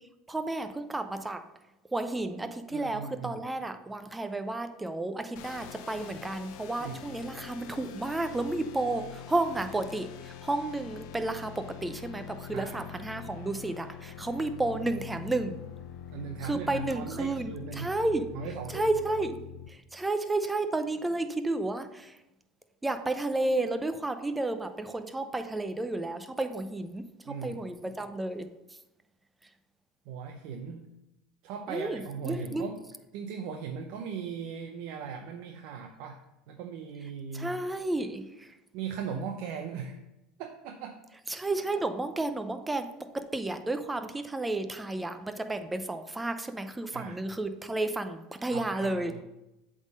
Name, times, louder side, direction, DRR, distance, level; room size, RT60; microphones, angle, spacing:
voice 1, 0.3-1.4 1.9-15.6 16.4-17.5 17.8-18.3 18.7-19.4 19.9-22.1 22.8-27.1 27.4-28.5 31.7-32.7 37.3-38.5 41.3-42.9 43.1-49.1, right 2 dB, 10° right, 8 dB, 0.6 m, -32 dB
voice 2, 2.7-3.4 6.7-7.0 12.5-12.9 16.1-17.9 18.3-18.9 27.3-27.6 30.1-30.9 31.4-32.8 33.1-37.5 38.7-40.0 40.4-41.0 46.9-47.2 48.5-49.2, right 6 dB, 70° right, 4 dB, 0.6 m, -38 dB
sound 1, 5.4-19.7, left 10 dB, 70° left, 0.7 m, -44 dB
7.9 x 3.8 x 5.1 m, 0.94 s
supercardioid pair, 100°, 0 cm